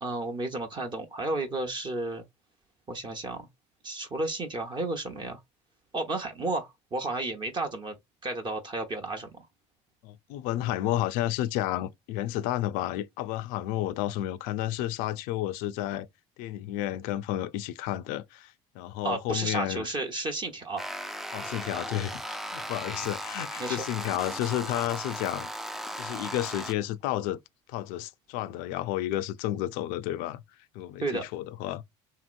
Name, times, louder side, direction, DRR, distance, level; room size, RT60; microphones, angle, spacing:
voice 1, 0.0-2.2 2.9-3.5 3.8-5.4 5.9-8.0 8.2-9.4 19.0-20.9 23.6-23.9 31.0-31.2, right 2 dB, 30° right, 0.8 m, -32 dB
voice 2, 10.0-16.1 16.4-19.9 21.3-25.5 26.0-27.4 27.7-30.4 30.7-31.8, left 13 dB, 70° left, 0.4 m, -31 dB
sound 1, 20.8-26.7, equal, ahead, 0.3 m, -37 dB
2.9 x 2.9 x 2.5 m
supercardioid pair, 90°, 15 cm